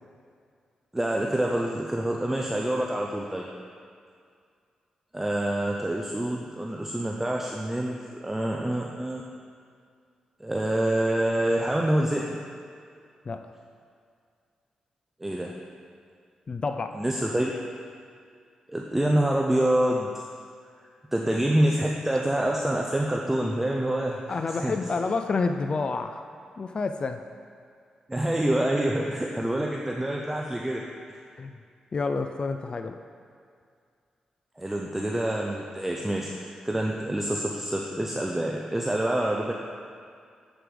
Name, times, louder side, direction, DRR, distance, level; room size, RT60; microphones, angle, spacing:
voice 1, 0.9-3.5 5.1-9.2 10.4-12.4 15.2-15.6 16.9-17.5 18.7-20.2 21.1-24.7 28.1-31.2 34.6-39.5, right 1 dB, 10° right, -1 dB, 0.6 m, -27 dB
voice 2, 16.5-17.0 24.3-26.3 26.6-27.2 31.4-31.6 31.9-33.0, left 4 dB, 40° left, 7 dB, 0.4 m, -29 dB
7.7 x 5.0 x 4.9 m, 2.2 s
cardioid pair, 65°, 2 cm